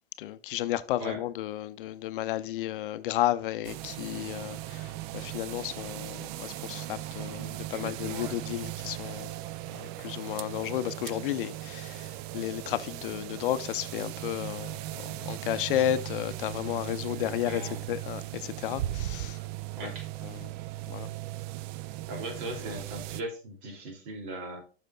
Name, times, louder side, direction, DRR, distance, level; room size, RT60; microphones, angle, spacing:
voice 1, 0.2-9.3 9.7-17.6 17.9-19.4 19.8-19.9 20.2-20.5 20.9-21.1, left 13 dB, 55° left, 0.6 m, -33 dB
sound 1, 3.6-23.2, right 16 dB, 35° right, 0.4 m, -38 dB
voice 2, 7.7-8.3 17.1-17.8 19.7-20.1 22.1-24.6, right 1 dB, 55° right, 2.7 m, -39 dB
12.5 x 5.8 x 2.3 m
figure-of-eight pair, 95°, 31 cm